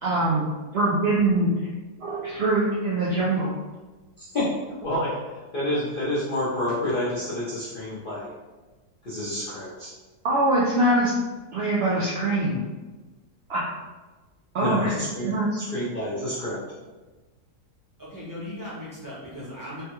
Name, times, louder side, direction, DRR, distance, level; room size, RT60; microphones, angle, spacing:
voice 1, 0.0-0.5 0.7-1.5 2.0-3.5 10.2-11.1 11.5-12.6 13.5-13.6 14.5-14.9 15.2-15.5, right 2 dB, 85° right, -6 dB, 0.5 m, -23 dB
voice 2, 4.8-8.3 9.0-9.9 14.6-16.6, left 1 dB, 50° left, -10 dB, 0.6 m, -29 dB
voice 3, 18.0-19.8, left 1 dB, 15° right, -9 dB, 0.6 m, -37 dB
3.3 x 2.2 x 2.9 m, 1.2 s
omnidirectional pair, 1.7 m